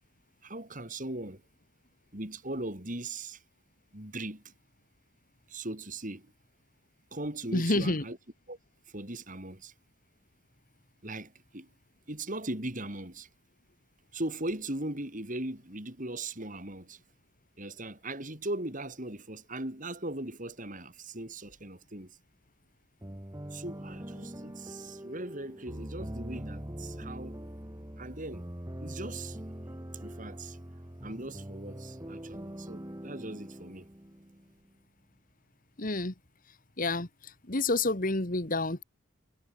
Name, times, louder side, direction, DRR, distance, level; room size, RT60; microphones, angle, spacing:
voice 1, 0.4-1.4 2.1-3.4 3.9-4.5 5.5-6.3 7.1-8.2 8.5-8.6 8.9-9.7 11.0-11.7 12.1-13.3 14.1-17.0 17.6-22.2 23.5-27.4 28.0-28.5 28.8-29.4 29.9-30.6 31.0-33.9, right 1 dB, 40° right, 4.3 m, -39 dB
voice 2, 7.5-8.0 35.8-36.1 36.8-38.8, left 2 dB, 40° left, 2.0 m, -29 dB
sound 1, 23.0-34.7, right 1 dB, 15° right, 1.5 m, -43 dB
head